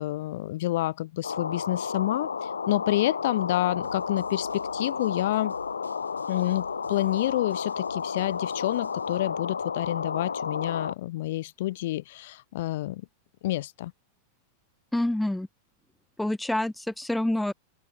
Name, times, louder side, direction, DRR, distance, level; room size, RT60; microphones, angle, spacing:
voice 1, 0.0-5.5 6.3-13.0 13.4-13.9, left 16 dB, 55° left, 0.9 m, -28 dB
sound 1, 1.2-10.9, left 6 dB, 75° left, 1.4 m, -32 dB
sound 2, 3.8-9.2, right 4 dB, 75° right, 6.9 m, -52 dB
voice 2, 14.9-15.5 16.2-17.5, left 1 dB, 5° left, 0.5 m, -27 dB
open air
figure-of-eight pair, 90°, 0 cm